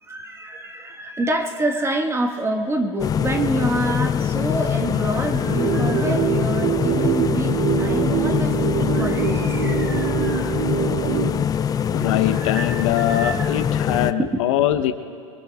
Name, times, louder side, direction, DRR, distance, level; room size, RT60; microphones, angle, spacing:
voice 1, 0.0-10.7 11.8-13.5 14.2-14.4, right 1 dB, 15° right, 4 dB, 1.4 m, -27 dB
sound 1, 3.0-14.1, left 8 dB, 20° left, 0.4 m, -23 dB
sound 2, 5.4-11.4, right 11 dB, 55° right, 0.6 m, -24 dB
voice 2, 11.9-14.9, left 12 dB, 70° left, 8 dB, 0.8 m, -22 dB
25.0 x 22.5 x 2.3 m, 2.3 s
hypercardioid pair, 95°, 17 cm